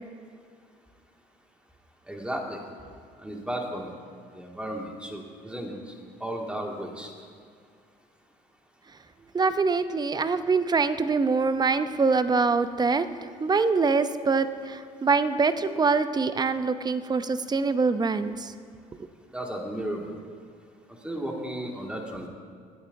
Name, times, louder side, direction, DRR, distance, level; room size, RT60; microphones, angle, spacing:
voice 1, 2.1-2.6 3.2-3.9 4.3-5.9 6.2-7.1 19.3-20.1 21.0-22.3, right 1 dB, 5° right, 0 dB, 2.2 m, -34 dB
voice 2, 9.3-13.1 13.4-18.5, right 4 dB, 25° right, 11 dB, 0.7 m, -24 dB
21.0 x 8.9 x 2.7 m, 2.2 s
supercardioid pair, 70°, 16 cm